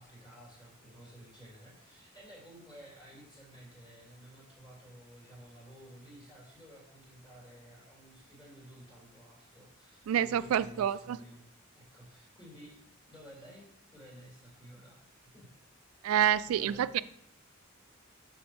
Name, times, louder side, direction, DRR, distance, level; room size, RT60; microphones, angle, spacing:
voice 1, 0.0-11.4 11.7-12.8 13.1-15.1 15.3-15.5 16.0-17.0, right 1 dB, 20° left, -4 dB, 3.0 m, -53 dB
voice 2, 10.1-11.2 16.0-17.0, right 10 dB, 90° right, 16 dB, 0.3 m, -28 dB
6.4 x 6.4 x 4.4 m, 0.75 s
head